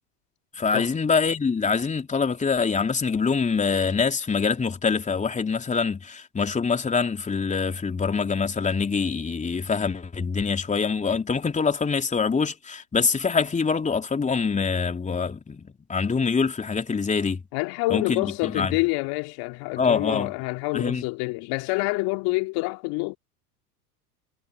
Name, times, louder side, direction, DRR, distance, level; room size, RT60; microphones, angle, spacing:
voice 1, 0.6-17.4 17.9-18.8 19.8-20.3 20.7-21.0, left 5 dB, 15° left, 3.3 m, -25 dB
voice 2, 17.5-23.2, left 25 dB, 50° left, 2.6 m, -27 dB
hypercardioid pair, 90°, 47 cm